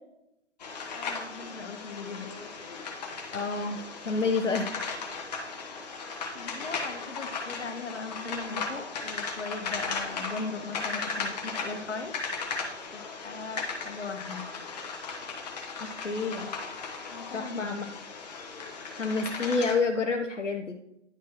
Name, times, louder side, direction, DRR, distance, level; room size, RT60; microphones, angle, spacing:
sound 1, 0.6-19.7, left 4 dB, 35° left, 1.1 m, -37 dB
voice 1, 0.9-2.9 6.3-12.1 12.9-14.4 17.1-17.9, left 4 dB, 70° left, 6 dB, 1.2 m, -39 dB
voice 2, 3.3-3.8 4.0-4.7 15.8-16.5 17.3-17.9 19.0-20.8, left 4 dB, 90° left, 3 dB, 0.7 m, -28 dB
10.0 x 4.5 x 3.0 m, 0.86 s
figure-of-eight pair, 140°, 36 cm